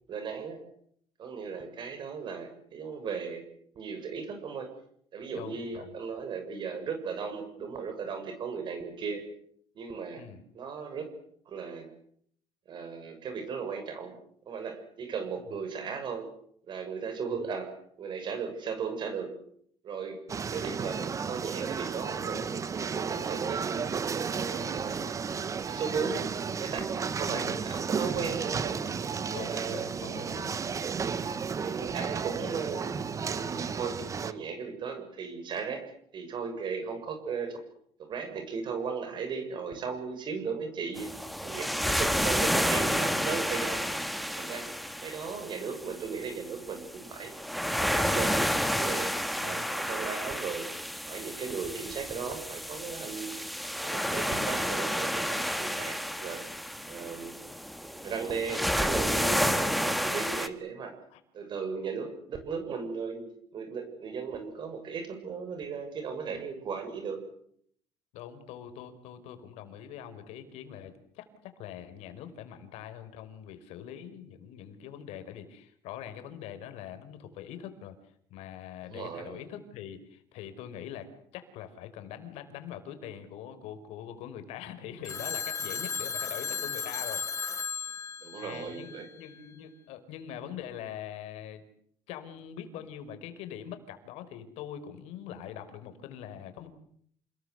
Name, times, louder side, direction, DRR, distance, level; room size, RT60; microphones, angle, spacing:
voice 1, 0.1-0.6 1.2-3.4 3.7-4.7 5.1-9.2 9.7-10.2 10.5-11.1 11.4-11.9 12.7-14.1 14.4-16.3 16.7-17.7 18.0-19.3 19.8-20.2 20.5-22.5 22.8-23.8 24.1-25.1 25.7-26.3 26.6-28.9 29.5-29.9 31.5-32.9 33.2-35.8 36.1-37.6 38.0-41.1 41.4-43.9 44.3-44.7 45.0-47.3 47.8-48.4 48.7-49.1 49.4-50.7 51.1-53.4 53.8-56.4 56.9-57.3 57.9-60.9 61.3-67.2 78.8-79.4 88.2-89.1, right 5 dB, 45° right, 6 dB, 6.8 m, -36 dB
voice 2, 5.3-5.9 10.2-10.4 27.2-27.5 29.3-30.6 49.3-49.7 61.1-61.2 68.1-77.9 78.3-87.2 88.4-88.9 89.2-91.6 92.1-96.7, left 9 dB, 80° left, 9 dB, 4.8 m, -43 dB
sound 1, 20.3-34.3, right 6 dB, 30° right, 1.5 m, -33 dB
sound 2, 41.0-60.5, equal, ahead, 2.0 m, -31 dB
Telephone, 85.0-89.3, left 6 dB, 30° left, 2.3 m, -35 dB
28.5 x 21.0 x 8.1 m, 0.66 s
cardioid pair, 135°, 11 cm